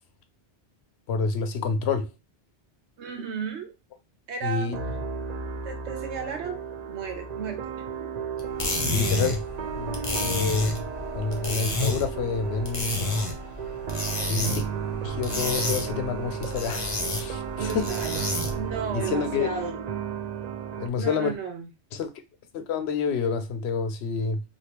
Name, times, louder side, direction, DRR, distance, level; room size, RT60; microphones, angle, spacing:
voice 1, 1.1-2.1 4.4-4.8 8.8-9.5 9.7-10.8 11.1-13.1 14.3-14.6 15.0-17.9 18.9-19.5 20.8-21.4 21.9-22.1 22.5-24.4, left 5 dB, 75° left, 0.8 m, -28 dB
voice 2, 3.0-3.7 4.3-4.7 5.6-8.1 17.5-18.2 18.5-19.8 20.9-21.7, right 6 dB, 90° right, 1.2 m, -34 dB
sound 1, 4.7-20.9, right 7 dB, 55° right, 0.5 m, -34 dB
sound 2, 8.4-18.7, left 2 dB, 35° left, 0.7 m, -31 dB
3.2 x 2.5 x 2.9 m
omnidirectional pair, 1.1 m